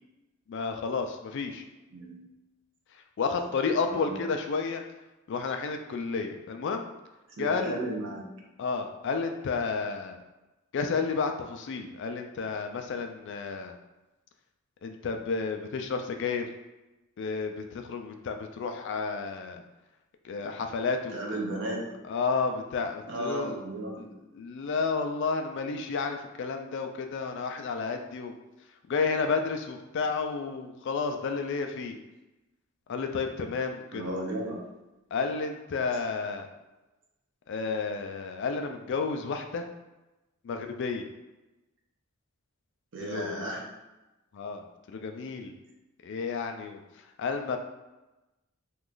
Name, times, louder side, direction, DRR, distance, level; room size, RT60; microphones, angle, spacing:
voice 1, 0.5-1.6 3.2-4.8 5.3-6.9 7.4-7.7 8.6-10.2 10.7-13.7 14.8-16.4 17.2-19.6 20.2-21.1 22.1-23.6 24.0-24.1 24.3-28.3 28.9-32.0 32.9-34.0 35.1-36.5 37.5-39.7 40.4-41.1 43.0-43.5 44.3-45.5 46.0-46.8 47.2-47.6, left 4 dB, 60° left, 5 dB, 0.4 m, -31 dB
voice 2, 1.9-2.3 3.8-4.2 7.4-8.3 21.1-21.8 23.1-24.0 33.9-34.6 42.9-43.6, right 1 dB, 60° right, -1 dB, 0.8 m, -34 dB
3.0 x 2.4 x 3.8 m, 1.0 s
head